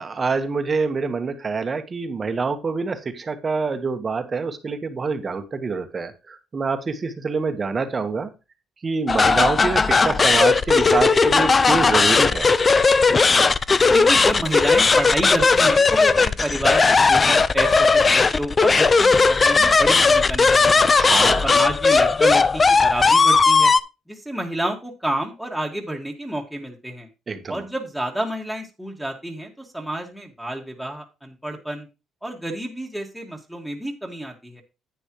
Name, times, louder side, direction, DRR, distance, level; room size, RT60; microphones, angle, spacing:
voice 1, 0.0-8.3 8.8-12.5 20.9-21.5 27.3-27.6, right 4 dB, 30° right, 8 dB, 1.2 m, -26 dB
sound 1, 9.1-23.8, left 4 dB, 25° left, 0.4 m, -17 dB
voice 2, 13.9-21.0 21.4-23.7 24.1-27.1 27.5-31.9 32.2-34.6, right 1 dB, ahead, 2 dB, 1.8 m, -29 dB
10.0 x 9.2 x 3.1 m, 0.28 s
cardioid pair, 125°, 0 cm